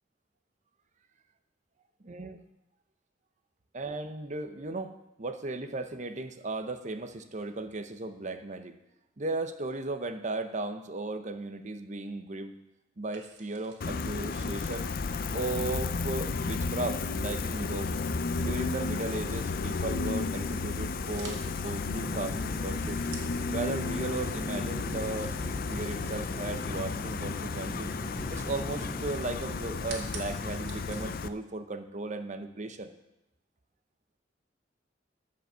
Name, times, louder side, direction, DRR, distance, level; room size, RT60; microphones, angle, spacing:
voice 1, 2.0-2.4 3.7-8.8 9.2-12.5 13.0-14.9 15.3-17.9 18.4-23.0 23.5-25.3 25.7-27.9 28.3-32.9, right 2 dB, 40° right, 8 dB, 0.8 m, -36 dB
sound 1, 13.1-31.2, right 4 dB, 70° right, 2.0 m, -53 dB
Gull seagull, 13.8-31.3, left 4 dB, 55° left, 0.5 m, -33 dB
sound 2, 22.0-29.0, right 1 dB, 5° right, 0.4 m, -42 dB
13.5 x 5.3 x 6.8 m, 0.89 s
head